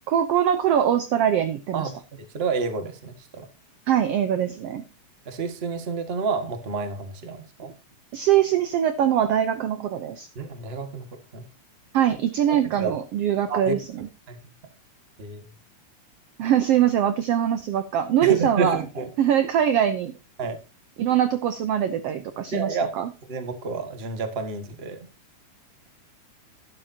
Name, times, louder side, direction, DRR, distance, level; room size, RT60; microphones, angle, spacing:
voice 1, 0.1-1.9 3.9-4.8 8.1-10.3 11.9-13.8 16.4-18.8 19.2-20.1 21.0-23.1, right 10 dB, 75° right, 10 dB, 1.4 m, -22 dB
voice 2, 2.2-3.5 5.2-7.7 10.3-11.0 11.3-11.4 12.5-12.9 13.5-13.8 14.3-14.4 15.2-15.5 18.2-19.1 20.4-20.6 22.5-22.9 23.3-25.1, right 4 dB, 30° right, 7 dB, 1.2 m, -29 dB
12.0 x 11.5 x 2.8 m, 0.29 s
omnidirectional pair, 3.6 m